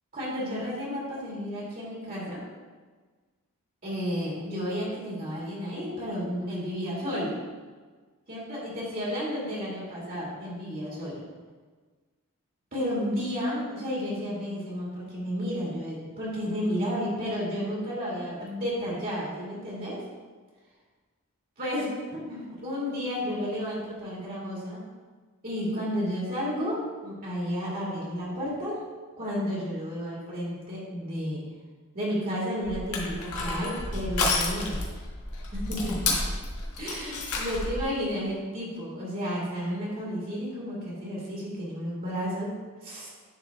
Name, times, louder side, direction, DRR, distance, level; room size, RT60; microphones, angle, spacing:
voice 1, 0.1-2.4 3.8-7.4 8.3-11.3 12.7-20.0 21.6-24.8 25.4-28.8 29.2-31.4 31.9-34.8 35.5-36.1 36.8-42.5 42.8-43.1, equal, 40° right, -6 dB, 2.1 m, -32 dB
Crushing, 32.6-37.9, left 2 dB, 90° left, 1.3 m, -30 dB
9.8 x 3.7 x 3.4 m, 1.4 s
head